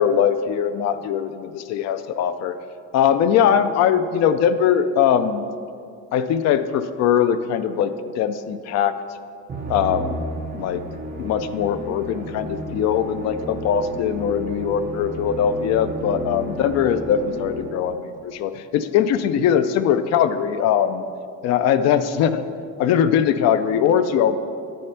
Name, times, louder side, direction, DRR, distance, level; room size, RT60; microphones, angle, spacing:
voice 1, 0.0-2.5 2.9-5.4 6.1-8.9 9.7-10.3 10.5-10.8 11.2-21.0 21.4-22.4 22.8-24.4, left 8 dB, 55° left, 12 dB, 0.4 m, -21 dB
Musical instrument, 9.5-18.0, right 1 dB, 25° right, 0.8 m, -32 dB
10.0 x 4.3 x 5.7 m, 2.3 s
cardioid pair, 175°, 31 cm